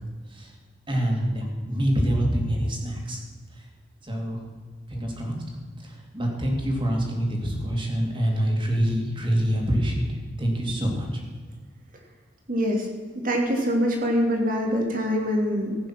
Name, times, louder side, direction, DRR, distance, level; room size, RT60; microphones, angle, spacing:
voice 1, 0.9-3.2 4.0-4.4 4.9-5.4 5.8-10.0 10.4-11.1, equal, 30° right, 0 dB, 3.0 m, -25 dB
voice 2, 12.5-12.9 13.2-15.8, equal, 50° right, 1 dB, 2.8 m, -24 dB
15.5 x 9.2 x 6.1 m, 1.5 s
head